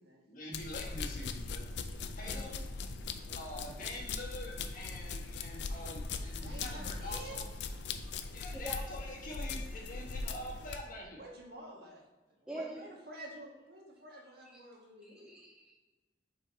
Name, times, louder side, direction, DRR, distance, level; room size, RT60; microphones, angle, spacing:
voice 1, 0.3-1.7 2.1-2.6 3.3-7.4 8.3-11.2, left 1 dB, 50° left, -2 dB, 1.7 m, -45 dB
sound 1, 0.5-10.8, left 4 dB, 75° left, 0.5 m, -40 dB
voice 2, 2.2-2.6 6.4-7.4 8.2-8.3 11.1-12.0 12.4-15.3, right 1 dB, 60° right, -1 dB, 1.5 m, -49 dB
voice 3, 12.5-12.9 14.4-14.6 15.0-15.7, right 1 dB, 5° right, 2 dB, 0.4 m, -44 dB
5.7 x 4.4 x 4.1 m, 1.2 s
head